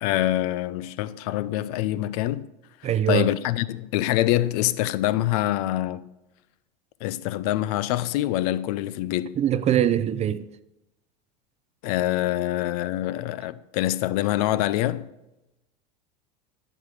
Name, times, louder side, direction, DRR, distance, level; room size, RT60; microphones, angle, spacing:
voice 1, 0.0-2.5 3.1-6.1 7.0-9.3 11.8-15.1, left 14 dB, 65° left, 0.6 m, -25 dB
voice 2, 2.8-3.3 9.4-10.5, right 10 dB, 30° right, 0.5 m, -22 dB
11.5 x 5.2 x 6.4 m
hypercardioid pair, 100°, 21 cm